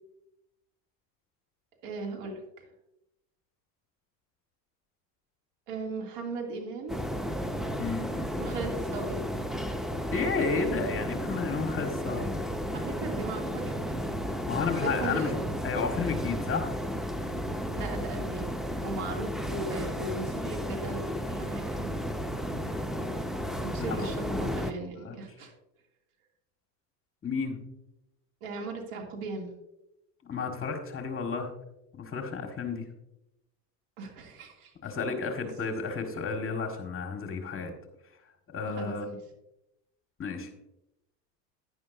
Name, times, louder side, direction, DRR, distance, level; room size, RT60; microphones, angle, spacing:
voice 1, 1.8-2.4 5.7-7.0 8.4-9.2 9.5-9.8 12.7-14.2 14.7-15.5 17.7-18.5 18.8-21.9 23.6-25.5 28.4-29.5 34.0-34.7 38.7-39.2, right 3 dB, 65° right, 1 dB, 2.9 m, -37 dB
sound 1, 6.9-24.7, equal, ahead, 0.6 m, -33 dB
voice 2, 7.8-8.1 10.1-12.5 14.5-15.4 15.6-16.7 23.9-24.1 25.0-25.2 27.2-27.6 30.3-31.5 31.9-32.9 34.8-37.7 38.5-39.1 40.2-40.5, left 5 dB, 25° left, 4 dB, 1.8 m, -32 dB
10.5 x 10.5 x 2.7 m, 0.88 s
hypercardioid pair, 90°, 49 cm